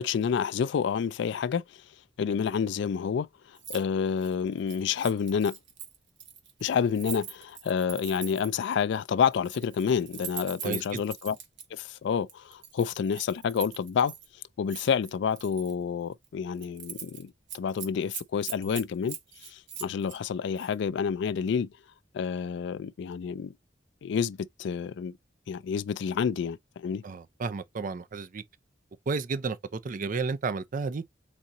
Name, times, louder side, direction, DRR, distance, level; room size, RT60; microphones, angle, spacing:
voice 1, 0.0-1.6 2.2-3.3 3.7-5.6 6.6-11.4 11.7-14.1 14.6-19.2 19.4-21.7 22.1-23.5 24.0-25.1 25.5-27.0, left 6 dB, 65° left, 0.3 m, -29 dB
Keys jangling, 3.6-3.8 4.1-8.6 9.3-11.6 12.3-14.3 14.7-15.7 16.1-16.3 16.6-17.2 17.5-20.2 20.6-20.7, right 8 dB, 65° right, 1.2 m, -42 dB
voice 2, 10.6-11.0 27.0-28.4 29.1-31.0, right 4 dB, 45° right, 0.5 m, -32 dB
4.1 x 3.7 x 2.8 m
head